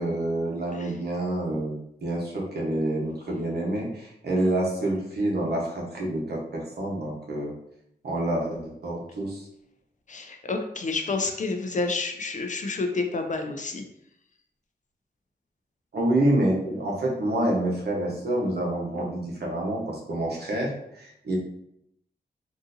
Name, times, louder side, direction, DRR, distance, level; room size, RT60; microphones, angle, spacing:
voice 1, 0.0-7.5 8.0-9.5 15.9-21.4, right 1 dB, 65° right, -2 dB, 1.0 m, -27 dB
voice 2, 10.1-13.8, left 3 dB, 45° left, 5 dB, 0.4 m, -29 dB
3.6 x 2.6 x 2.6 m, 0.76 s
wide cardioid pair, 85°, 18 cm